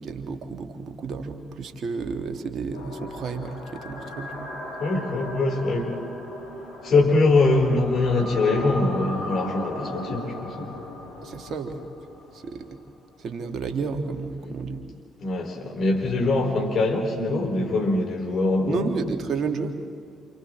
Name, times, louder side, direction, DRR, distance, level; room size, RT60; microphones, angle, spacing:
voice 1, 0.0-4.5 11.2-11.8 12.3-12.7 13.2-14.8 18.7-19.7, right 5 dB, 50° right, 5 dB, 1.8 m, -31 dB
sound 1, 2.7-12.8, left 1 dB, 80° left, 4.9 m, -37 dB
voice 2, 4.8-6.0 6.8-10.7 14.4-14.5 15.2-19.1, left 2 dB, 50° left, -1 dB, 4.1 m, -23 dB
28.5 x 28.5 x 3.2 m, 2.4 s
figure-of-eight pair, 40°, 0 cm